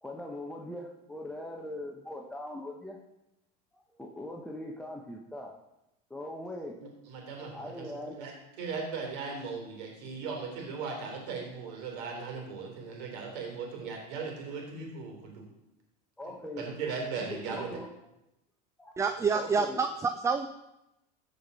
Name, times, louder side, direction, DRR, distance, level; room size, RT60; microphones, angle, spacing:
voice 1, 0.0-3.0 3.9-5.5 6.1-6.7 7.5-8.3 16.2-16.7 17.2-17.9 18.8-18.9 19.3-19.8, left 1 dB, 5° left, 0 dB, 1.1 m, -41 dB
voice 2, 6.8-7.7 8.1-8.3 8.6-15.4 16.6-17.7, right 5 dB, 75° right, 1 dB, 3.4 m, -38 dB
voice 3, 19.0-20.5, right 5 dB, 15° right, 8 dB, 0.5 m, -28 dB
15.0 x 5.3 x 5.4 m, 0.91 s
supercardioid pair, 125°, 21 cm